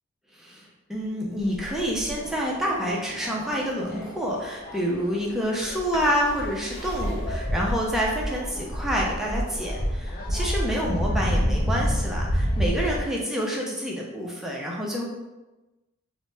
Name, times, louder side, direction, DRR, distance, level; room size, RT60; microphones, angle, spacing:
voice 1, 0.3-15.0, equal, ahead, -4 dB, 0.4 m, -28 dB
sound 1, 1.4-13.0, equal, 45° left, 0.5 m, -29 dB
sound 2, 5.9-11.5 12.0-12.8, left 1 dB, 65° left, 0.9 m, -47 dB
2.7 x 2.1 x 3.2 m, 1.1 s
head